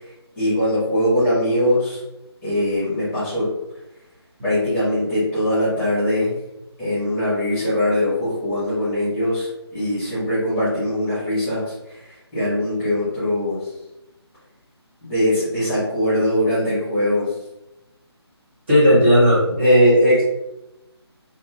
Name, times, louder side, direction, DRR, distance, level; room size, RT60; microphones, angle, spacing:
voice 1, 0.4-2.0 2.4-3.5 4.4-6.3 6.8-12.0 12.3-13.6 15.0-17.3, left 1 dB, 10° left, -12 dB, 1.1 m, -22 dB
voice 2, 18.7-20.2, equal, 25° right, -10 dB, 0.9 m, -14 dB
2.6 x 2.6 x 2.4 m, 0.90 s
figure-of-eight pair, 150°, 14 cm